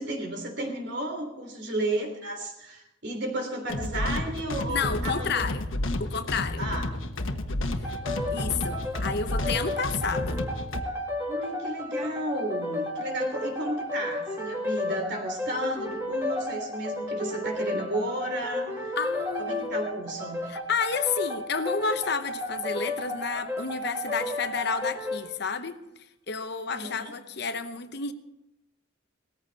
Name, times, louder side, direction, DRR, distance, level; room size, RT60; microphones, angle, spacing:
voice 1, 0.0-5.4 6.6-6.9 11.3-18.9 19.4-20.4 26.7-27.1, right 1 dB, 55° right, 4 dB, 3.4 m, -33 dB
sound 1, 3.7-10.8, left 1 dB, 75° left, 1.2 m, -31 dB
voice 2, 4.7-5.6 6.0-6.7 8.3-10.5 19.0-19.8 20.5-25.8 26.3-28.1, left 5 dB, 55° left, 9 dB, 0.9 m, -30 dB
sound 2, 7.8-25.3, left 1 dB, 15° right, 2.3 m, -33 dB
18.5 x 14.5 x 4.2 m, 0.90 s
head